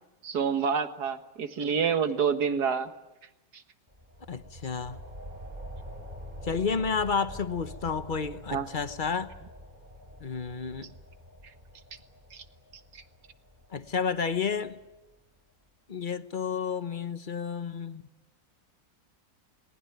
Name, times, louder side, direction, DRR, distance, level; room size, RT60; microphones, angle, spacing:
voice 1, 0.2-2.9 3.5-3.6 8.5-8.7 12.3-12.4 12.9-13.0, right 6 dB, 60° right, 9 dB, 2.0 m, -28 dB
sound 1, 3.9-15.1, equal, 25° right, 4.3 m, -46 dB
voice 2, 4.3-5.0 6.4-9.3 10.2-10.9 13.7-14.8 15.9-18.0, left 5 dB, 35° left, 11 dB, 1.0 m, -31 dB
28.5 x 20.0 x 9.3 m, 1.0 s
omnidirectional pair, 2.0 m